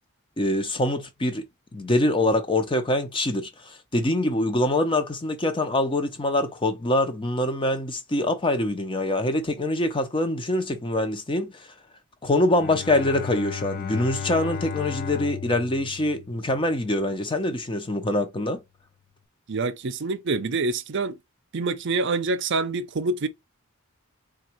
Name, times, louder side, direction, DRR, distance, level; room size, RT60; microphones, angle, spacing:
voice 1, 0.4-1.4 1.7-11.7 12.2-18.6, left 1 dB, 25° left, 0.7 m, -24 dB
Bowed string instrument, 12.6-16.9, left 7 dB, 45° left, 0.4 m, -35 dB
voice 2, 19.5-21.2 21.5-23.3, right 3 dB, 60° right, 0.6 m, -26 dB
3.8 x 2.4 x 4.4 m
head